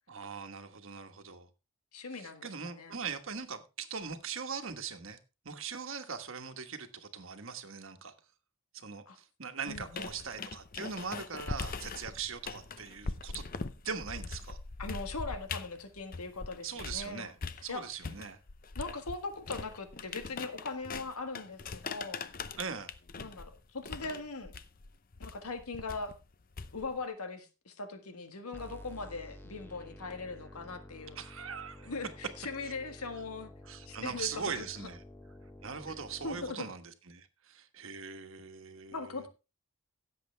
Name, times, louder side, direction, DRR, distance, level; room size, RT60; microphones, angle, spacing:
voice 1, 0.1-1.5 2.2-5.2 5.4-8.1 8.7-13.5 13.8-14.6 16.6-17.3 17.6-18.4 22.6-22.9 31.1-31.9 33.6-35.0 35.6-39.3, right 6 dB, 60° right, 1.4 m, -41 dB
voice 2, 1.9-2.9 9.1-9.2 9.7-10.1 14.8-18.0 18.8-22.3 23.2-24.5 25.2-26.1 26.7-31.2 31.8-33.5 33.9-34.9 36.2-36.7 38.9-39.3, left 3 dB, 85° left, 1.6 m, -40 dB
sound 1, 9.7-17.1 17.4-27.0, left 4 dB, 40° left, 0.6 m, -42 dB
sound 2, 28.5-36.5, left 1 dB, 10° left, 0.8 m, -51 dB
16.0 x 7.7 x 3.4 m
head